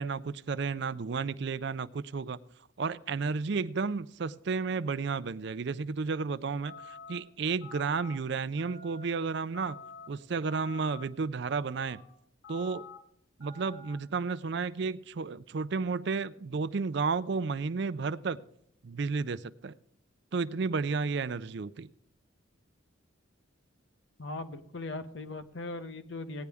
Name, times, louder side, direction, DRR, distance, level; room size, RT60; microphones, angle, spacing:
voice 1, 0.0-2.4 2.8-9.8 10.1-12.0 12.5-12.8 13.4-18.4 18.8-19.7 20.3-21.9, right 4 dB, 55° right, 15 dB, 0.4 m, -32 dB
sound 1, 6.6-7.2 7.6-8.1 8.6-9.1 9.5-10.1 10.5-11.0 11.5-12.0 12.4-13.0 13.4-13.9, left 4 dB, 80° left, 3.5 m, -48 dB
voice 2, 24.2-26.5, left 2 dB, 60° left, 9 dB, 1.0 m, -39 dB
17.0 x 9.6 x 3.5 m, 0.70 s
head